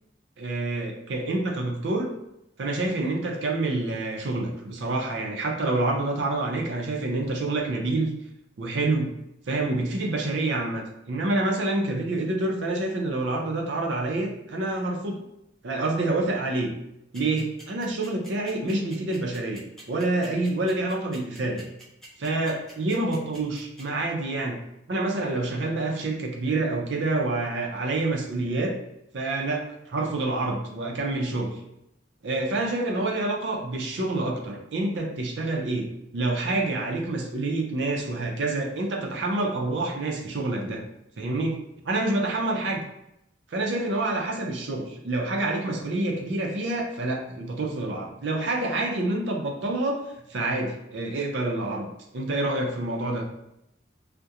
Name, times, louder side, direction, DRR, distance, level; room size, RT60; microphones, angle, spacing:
voice 1, 0.4-2.1 2.6-8.1 8.6-9.1 9.5-15.2 15.6-16.7 17.1-21.7 22.2-24.6 24.9-28.8 29.1-31.6 32.2-40.8 41.2-42.8 43.5-50.0 50.3-53.3, right 2 dB, 75° right, 1 dB, 0.5 m, -27 dB
sound 1, 17.1-23.8, right 1 dB, 5° left, 0.6 m, -47 dB
2.3 x 2.1 x 2.8 m, 0.82 s
head